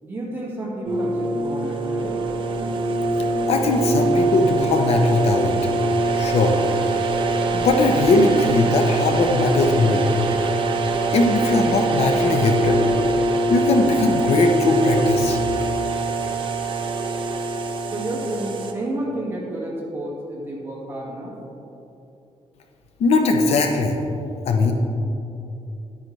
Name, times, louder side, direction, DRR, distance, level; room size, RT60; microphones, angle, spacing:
voice 1, 0.0-2.2 17.9-21.4, right 1 dB, 20° right, -5 dB, 1.9 m, -30 dB
sound 1, 0.9-18.7, right 2 dB, 50° right, 0.8 m, -23 dB
voice 2, 3.5-5.6 6.1-6.6 7.5-10.0 11.1-12.8 13.5-15.4 23.0-24.0 24.5-24.7, left 3 dB, 70° left, 4 dB, 0.8 m, -19 dB
10.5 x 9.4 x 3.3 m, 2.8 s
wide cardioid pair, 160°, 11 cm